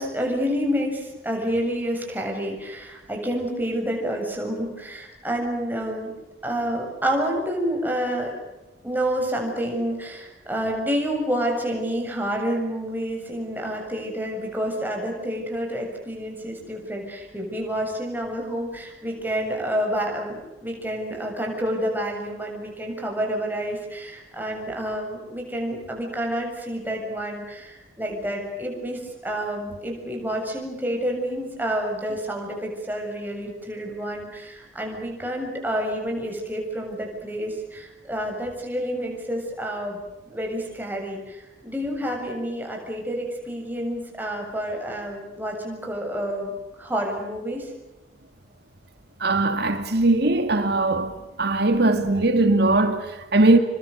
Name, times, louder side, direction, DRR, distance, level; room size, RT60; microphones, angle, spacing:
voice 1, 0.0-6.1 6.4-8.3 8.8-46.5 46.8-47.7, equal, 10° right, 7.5 m, -29 dB
voice 2, 49.2-51.1 51.4-53.6, right 2 dB, 55° right, 2.4 m, -20 dB
29.5 x 24.5 x 6.6 m
head